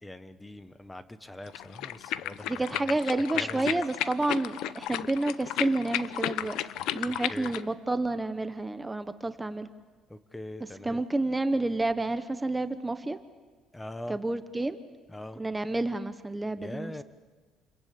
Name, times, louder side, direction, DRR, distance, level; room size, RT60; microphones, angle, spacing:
voice 1, 0.0-3.0 3.3-3.8 7.0-7.5 10.1-11.0 13.7-14.2 15.1-15.4 16.6-17.0, left 1 dB, 10° left, 12 dB, 1.1 m, -42 dB
sound 1, 1.5-7.7, left 13 dB, 85° left, 0.8 m, -33 dB
voice 2, 2.5-6.6 6.9-9.7 10.8-13.2 14.1-14.8 15.4-17.0, right 2 dB, 10° right, 10 dB, 1.0 m, -30 dB
29.0 x 22.5 x 8.7 m, 1.4 s
cardioid pair, 120°, 0 cm